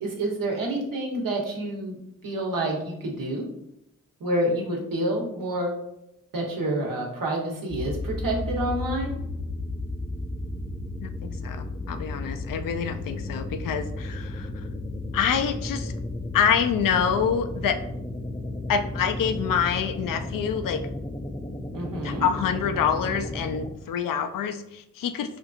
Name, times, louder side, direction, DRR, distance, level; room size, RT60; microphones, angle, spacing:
voice 1, 0.0-2.0 2.2-3.5 4.2-5.7 6.3-9.1 21.7-22.3, right 1 dB, 70° right, 0 dB, 1.0 m, -28 dB
sound 1, 7.7-23.7, left 2 dB, 15° left, 0.4 m, -33 dB
voice 2, 11.0-14.6 15.1-15.9 16.3-17.8 18.7-20.8 22.0-25.4, left 7 dB, 70° left, 8 dB, 0.5 m, -26 dB
4.4 x 2.6 x 2.4 m, 0.81 s
supercardioid pair, 45°, 34 cm